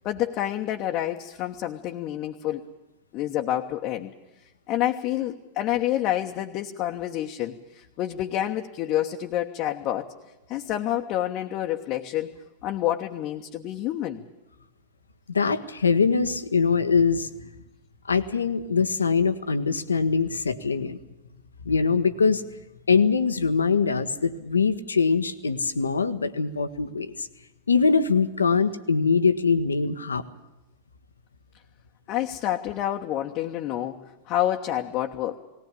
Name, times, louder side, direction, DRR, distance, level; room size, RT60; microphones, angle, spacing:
voice 1, 0.0-2.6 3.1-4.1 4.7-10.1 10.5-12.3 12.6-14.2 32.1-35.4, left 12 dB, 40° left, 2 dB, 1.2 m, -28 dB
voice 2, 15.3-17.3 18.1-21.0 21.6-22.4 22.9-27.3 27.7-30.2, left 5 dB, 75° left, 12 dB, 1.2 m, -23 dB
19.5 x 19.0 x 8.5 m, 1.0 s
figure-of-eight pair, 90°, 0 cm